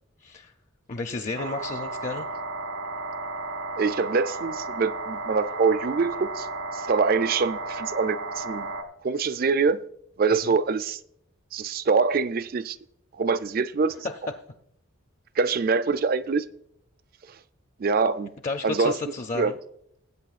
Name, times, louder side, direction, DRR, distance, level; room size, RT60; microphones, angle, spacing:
voice 1, 0.2-0.5 0.9-2.3 10.4-10.6 13.9-14.1 18.4-19.6, left 3 dB, 35° left, 0.5 m, -32 dB
sound 1, 1.4-8.8, right 3 dB, 75° right, 1.4 m, -33 dB
voice 2, 3.8-6.5 6.7-8.7 9.0-9.8 10.2-11.0 11.5-12.8 13.2-14.1 15.4-16.4 17.8-18.3 18.6-19.0 19.4-19.5, right 4 dB, 45° right, 0.4 m, -24 dB
19.0 x 8.4 x 2.4 m
head